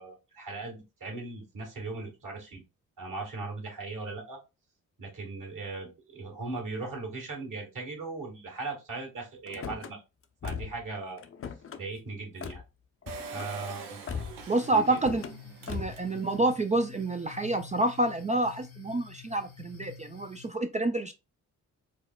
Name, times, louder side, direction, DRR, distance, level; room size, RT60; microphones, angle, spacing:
voice 1, 0.0-2.6 3.0-4.4 5.0-10.0 10.4-11.2 11.7-12.6 13.3-14.0 14.7-15.0, right 3 dB, 50° right, 2 dB, 1.7 m, -38 dB
Car / Slam, 9.5-9.9 10.4-10.9 11.2-11.8 12.4-12.6 13.0-13.5 14.1-14.5 14.9-15.4 15.7-16.1, left 6 dB, 35° left, 0.5 m, -38 dB
Engine, 13.1-16.5 17.0-17.1 17.3-17.4, right 4 dB, 85° right, 0.7 m, -43 dB
sound 1, 14.4-20.5, left 8 dB, 90° left, 1.1 m, -49 dB
voice 2, 14.5-15.2 15.7-21.1, right 2 dB, 20° right, 7 dB, 0.3 m, -28 dB
4.5 x 2.1 x 2.2 m, 0.26 s
hypercardioid pair, 45°, 40 cm